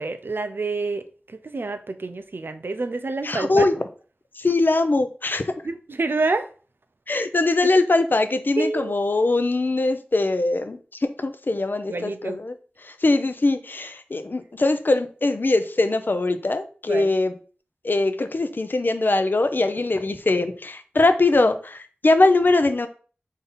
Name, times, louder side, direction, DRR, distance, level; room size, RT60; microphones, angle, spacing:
voice 1, 0.0-3.7 5.6-6.5 7.1-7.3 7.6-7.7 8.6-9.1 11.9-12.4 16.9-17.1, right 3 dB, 65° right, 0.4 m, -28 dB
voice 2, 3.2-3.7 4.4-5.5 7.1-12.5 12.8-17.3 17.8-22.9, left 2 dB, 55° left, 0.5 m, -22 dB
3.5 x 2.7 x 3.8 m
wide cardioid pair, 50°, 4 cm